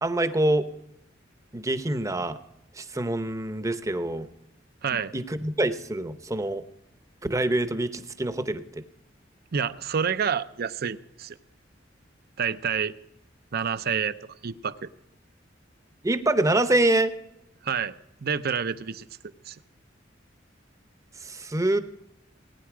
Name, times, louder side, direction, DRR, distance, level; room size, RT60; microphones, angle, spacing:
voice 1, 0.0-0.7 1.5-2.4 2.8-4.3 5.1-6.6 7.3-8.8 16.0-17.1 21.2-21.8, right 1 dB, 15° right, 11 dB, 0.8 m, -25 dB
voice 2, 4.8-5.1 9.5-11.4 12.4-12.9 13.5-14.1 14.4-14.9 17.6-17.9 18.2-19.1 19.5-19.6, right 7 dB, 55° right, 14 dB, 0.6 m, -28 dB
18.5 x 9.8 x 4.9 m, 0.84 s
head